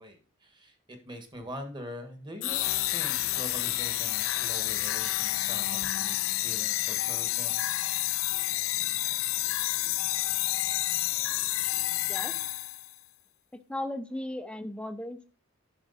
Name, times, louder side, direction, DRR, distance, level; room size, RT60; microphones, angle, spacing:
voice 1, 0.0-7.8, equal, 20° right, 6 dB, 1.6 m, -43 dB
sound 1, 2.4-12.9, left 16 dB, 75° left, 0.4 m, -29 dB
voice 2, 13.5-15.3, left 1 dB, 5° left, 9 dB, 0.7 m, -36 dB
10.5 x 6.1 x 4.1 m, 0.37 s
head